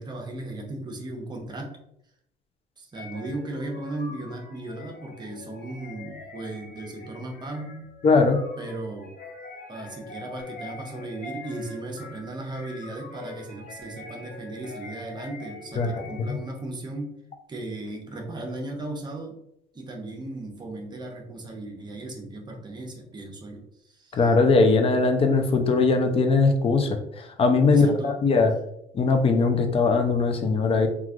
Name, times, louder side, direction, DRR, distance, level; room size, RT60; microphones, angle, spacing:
voice 1, 0.0-1.8 2.8-7.8 8.6-9.1 9.7-17.1 17.5-19.4 19.7-24.2 27.7-28.1, right 2 dB, 25° right, 1 dB, 0.7 m, -36 dB
sound 1, 2.9-16.6, left 2 dB, 55° left, 1.0 m, -43 dB
voice 2, 8.0-8.4 15.8-16.0 16.3-16.4 24.1-28.5 28.9-30.9, left 4 dB, 35° left, 5 dB, 0.5 m, -20 dB
3.1 x 2.4 x 2.4 m, 0.77 s
cardioid pair, 110°, 17 cm